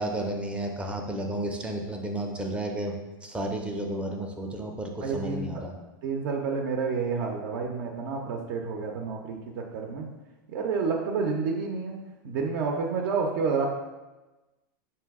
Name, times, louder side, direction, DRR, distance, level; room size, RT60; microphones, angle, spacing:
voice 1, 0.0-3.0 3.2-5.8, right 1 dB, 10° right, 2 dB, 0.4 m, -32 dB
voice 2, 5.0-5.6 6.0-10.1 10.5-13.7, right 5 dB, 65° right, 1 dB, 0.5 m, -29 dB
3.9 x 2.7 x 3.5 m, 1.1 s
supercardioid pair, 125°, 11 cm